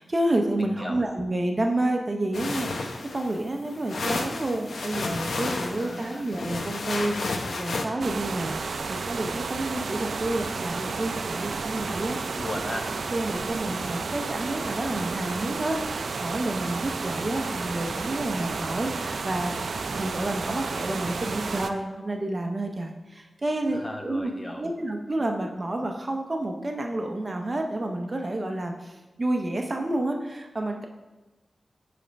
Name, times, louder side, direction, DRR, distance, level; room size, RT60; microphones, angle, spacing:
voice 1, 0.0-12.4 13.1-19.6 19.9-24.3 24.6-30.9, right 1 dB, 30° right, 3 dB, 0.6 m, -29 dB
voice 2, 0.6-1.0 5.7-6.2 12.3-12.9 23.7-24.7, left 1 dB, 20° left, 2 dB, 0.9 m, -36 dB
sound 1, 2.3-7.9, left 3 dB, 80° left, 0.7 m, -32 dB
sound 2, 8.0-21.7, right 4 dB, 75° right, 0.4 m, -32 dB
9.2 x 3.4 x 5.1 m, 1.1 s
wide cardioid pair, 115°, 0 cm